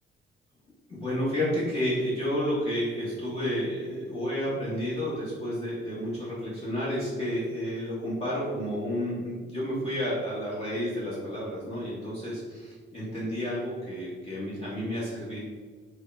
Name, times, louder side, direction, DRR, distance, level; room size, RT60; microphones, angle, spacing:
voice 1, 0.9-15.4, equal, 30° left, -8 dB, 1.2 m, -31 dB
3.4 x 2.2 x 2.5 m, 1.5 s
cardioid pair, 90°, 20 cm